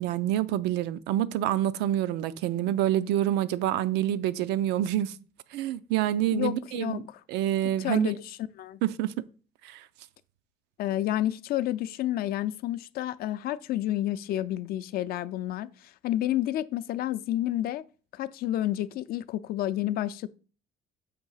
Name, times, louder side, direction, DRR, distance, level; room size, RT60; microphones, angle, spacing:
voice 1, 0.0-5.1 5.5-7.0 7.3-8.1 8.8-9.1 9.6-9.8, right 12 dB, 85° right, 0.4 m, -27 dB
voice 2, 6.3-7.2 7.8-8.8 10.8-17.8 18.1-20.3, left 13 dB, 65° left, 0.4 m, -30 dB
6.6 x 2.7 x 5.5 m
cardioid pair, 110°, 17 cm